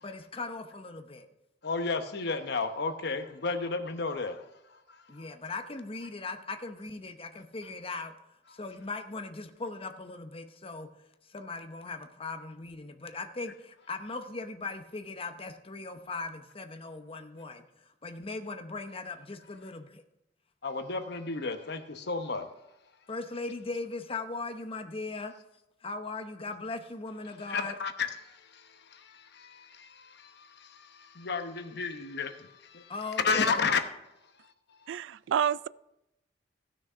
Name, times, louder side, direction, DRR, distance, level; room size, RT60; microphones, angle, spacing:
voice 1, 0.0-1.3 5.1-8.1 8.5-10.9 11.3-17.6 18.0-20.0 23.1-25.3 25.8-27.8 32.9-33.7, left 3 dB, 30° left, 0.9 m, -39 dB
voice 2, 1.6-4.4 4.7-5.3 20.6-22.5 27.4-32.9 33.2-33.8 34.4-34.8, left 4 dB, 60° left, 1.0 m, -33 dB
voice 3, 34.9-35.7, right 8 dB, 80° right, 0.3 m, -28 dB
15.5 x 6.3 x 5.0 m
head